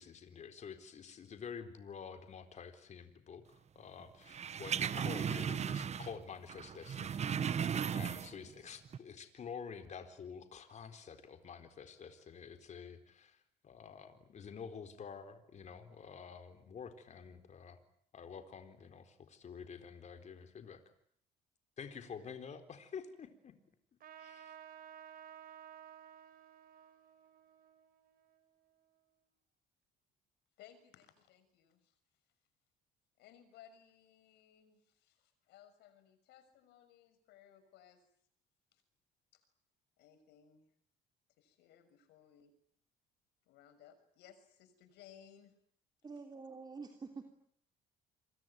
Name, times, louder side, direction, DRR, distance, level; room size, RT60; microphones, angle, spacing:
voice 1, 0.0-7.2 7.9-13.4 13.6-17.8 18.1-20.8 21.8-23.5, left 6 dB, 45° left, 8 dB, 4.1 m, -49 dB
sound 1, 4.3-6.2 6.5-8.5 8.9-9.0, right 8 dB, 40° right, 1.3 m, -36 dB
Trumpet, 24.0-29.0, right 9 dB, 60° right, 4.3 m, -55 dB
voice 2, 30.6-32.0 33.2-38.0 38.7-38.8 39.3-39.4 40.0-40.7 41.4-42.5 43.5-45.5, left 9 dB, 85° left, 11 dB, 6.3 m, -61 dB
voice 3, 46.0-47.3, right 4 dB, 25° right, 4 dB, 3.3 m, -47 dB
27.5 x 23.5 x 9.3 m, 0.65 s
cardioid pair, 110°, 17 cm